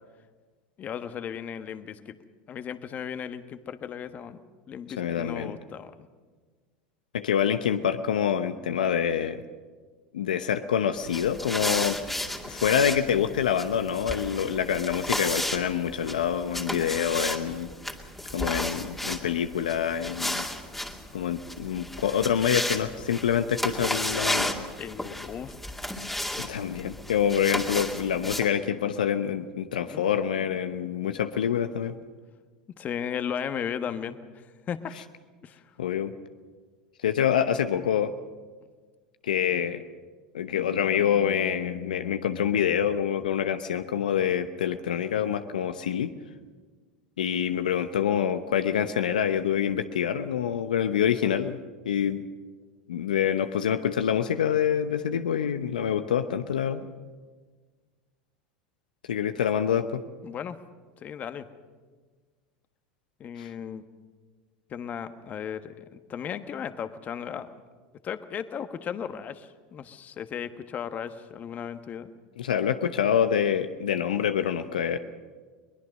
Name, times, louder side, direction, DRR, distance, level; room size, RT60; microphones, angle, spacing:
voice 1, 0.8-2.1 2.5-4.4 4.7-5.9 24.8-25.6 28.7-28.9 29.7-30.0 30.8-31.2 32.8-34.2 34.7-35.0 35.4-35.6 60.2-60.6 61.0-61.5 63.2-63.8 64.7-67.5 68.0-72.1, left 8 dB, 35° left, 10 dB, 1.3 m, -36 dB
voice 2, 5.0-5.6 7.1-9.4 10.1-12.0 12.4-17.7 18.3-20.5 21.1-24.5 26.4-31.9 35.8-36.1 37.0-38.1 39.2-39.8 40.3-46.1 47.2-51.6 51.9-52.2 52.9-56.9 59.1-60.0 63.4-63.5 72.4-75.0, left 8 dB, 80° left, 9 dB, 0.8 m, -26 dB
sound 1, 11.0-28.5, left 1 dB, 5° left, 2.3 m, -33 dB
22.0 x 20.5 x 6.4 m, 1.4 s
hypercardioid pair, 85°, 4 cm